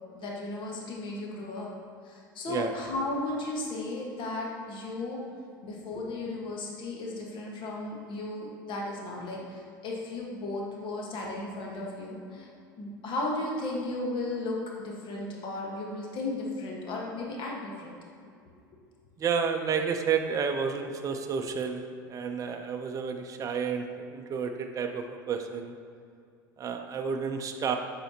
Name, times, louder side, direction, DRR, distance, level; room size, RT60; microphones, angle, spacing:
voice 1, 0.1-1.7 2.0-5.2 5.6-12.5 12.8-14.6 14.8-18.0, left 2 dB, 45° left, -2 dB, 1.3 m, -35 dB
voice 2, 19.2-23.9 24.1-25.7 26.6-27.8, right 6 dB, 30° right, 5 dB, 0.5 m, -31 dB
8.9 x 4.4 x 2.8 m, 2.4 s
hypercardioid pair, 85°, 11 cm